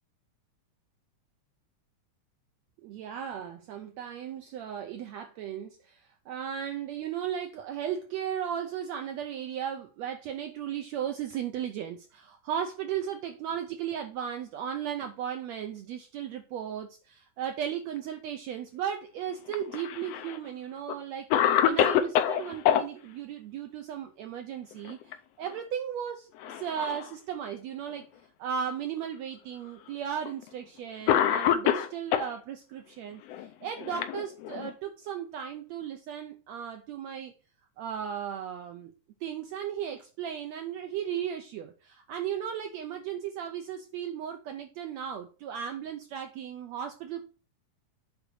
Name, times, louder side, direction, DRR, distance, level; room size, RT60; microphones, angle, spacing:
voice 1, 2.8-21.3 21.6-28.0 28.4-37.3 37.8-38.9 39.2-47.2, right 9 dB, 75° right, 5 dB, 1.6 m, -36 dB
Cough, 19.5-20.4 20.9-21.0 21.3-22.8 24.7-25.1 25.5-25.6 26.4-27.1 27.9-28.0 29.0-29.1 30.3-30.4 31.1-32.3 33.3-34.7, left 10 dB, 80° left, 1.5 m, -26 dB
8.2 x 4.0 x 6.1 m, 0.36 s
omnidirectional pair, 3.7 m